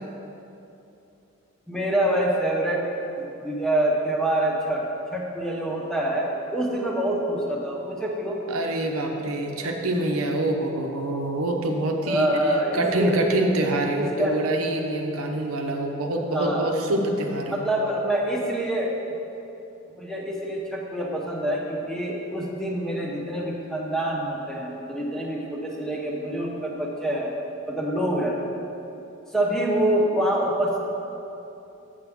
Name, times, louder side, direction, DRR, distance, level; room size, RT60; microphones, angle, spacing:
voice 1, 1.7-2.8 3.2-4.8 5.1-8.4 12.0-13.1 14.0-14.4 16.3-16.7 17.5-18.9 20.0-27.3 27.7-28.4 29.3-30.8, right 1 dB, ahead, -3 dB, 0.8 m, -26 dB
voice 2, 8.5-17.6, right 1 dB, 85° right, 2 dB, 0.8 m, -26 dB
7.5 x 7.0 x 3.5 m, 2.9 s
head